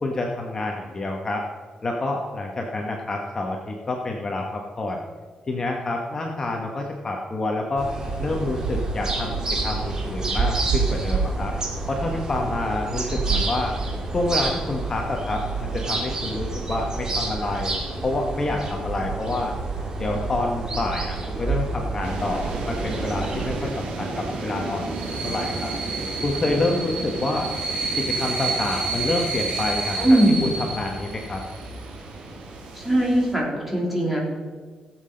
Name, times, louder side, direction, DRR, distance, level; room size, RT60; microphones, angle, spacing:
voice 1, 0.0-1.4 1.8-5.0 5.5-7.9 8.2-11.5 11.9-13.7 14.1-17.7 18.0-19.5 20.0-24.8 25.2-25.7 26.2-27.5 28.0-31.4, left 2 dB, 30° left, 0 dB, 1.3 m, -28 dB
sound 1, 7.8-23.6, right 3 dB, 30° right, 2.3 m, -28 dB
sound 2, 22.0-33.3, right 3 dB, 80° right, 2.6 m, -30 dB
voice 2, 30.0-30.5 32.7-34.2, right 1 dB, 5° right, -3 dB, 3.5 m, -20 dB
17.0 x 7.8 x 5.2 m, 1.5 s
cardioid pair, 140°, 2 cm